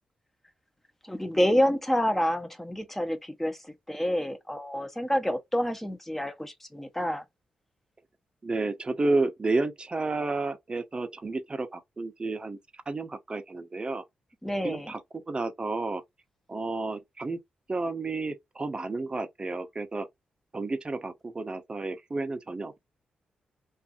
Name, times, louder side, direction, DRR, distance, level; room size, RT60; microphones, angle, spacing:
voice 1, 1.0-7.2 14.4-14.9, equal, 10° left, 0.7 m, -28 dB
voice 2, 8.4-12.6 12.9-14.0 14.6-15.0 15.3-16.0 16.5-17.4 17.7-20.1 20.5-22.8, right 3 dB, 30° right, 0.7 m, -31 dB
2.6 x 2.5 x 2.3 m
cardioid pair, 65°, 3 cm